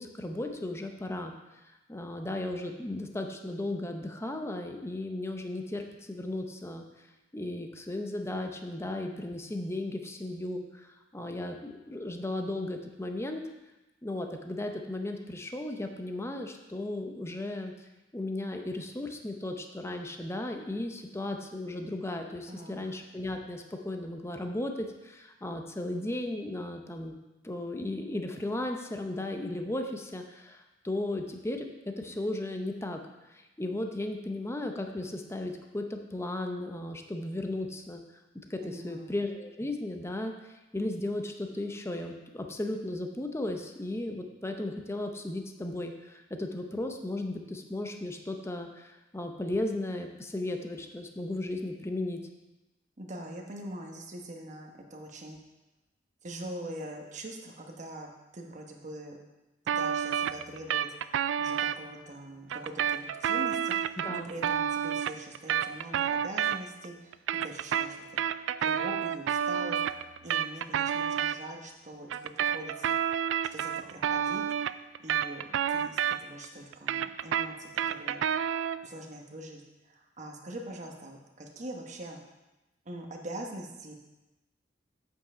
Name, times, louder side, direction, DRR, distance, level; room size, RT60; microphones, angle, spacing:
voice 1, 0.0-1.3 1.9-6.8 7.3-13.4 14.0-17.7 18.1-27.2 27.4-31.7 32.0-33.0 33.6-38.0 38.5-40.3 40.7-52.2 64.0-64.3, left 1 dB, 15° left, 4 dB, 0.7 m, -35 dB
voice 2, 22.5-22.8 38.6-39.2 53.0-55.4 56.2-59.2 59.7-60.9 61.4-63.7 64.1-68.0 68.6-69.8 70.2-73.0 73.5-74.4 75.0-78.3 78.8-79.6 79.9-82.2 82.9-83.9, right 1 dB, 40° right, 1 dB, 1.1 m, -43 dB
sound 1, 59.7-61.8 62.5-66.8 67.1-71.4 72.1-76.4 76.7-78.9, right 9 dB, 90° right, 0.3 m, -29 dB
8.2 x 5.5 x 5.0 m, 1.0 s
head